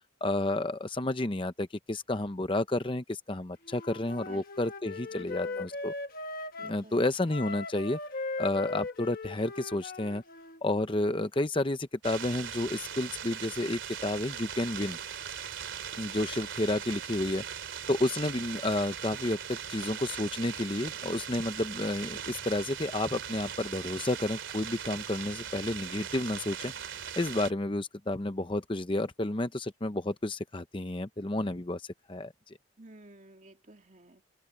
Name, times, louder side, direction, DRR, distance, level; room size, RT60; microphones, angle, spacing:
voice 1, 0.2-5.9 6.6-8.0 8.4-10.2 10.6-15.0 16.0-17.4 17.9-26.7 27.2-32.6, left 2 dB, 25° left, 0.7 m, -31 dB
Wind instrument woodwind instrument, 3.6-6.8 7.3-10.6, left 3 dB, 45° left, 1.3 m, -38 dB
voice 2, 4.9-5.7 6.6-7.1 32.8-34.2, right 1 dB, 40° right, 2.8 m, -53 dB
sound 1, 12.0-27.5, right 8 dB, 70° right, 2.9 m, -40 dB
head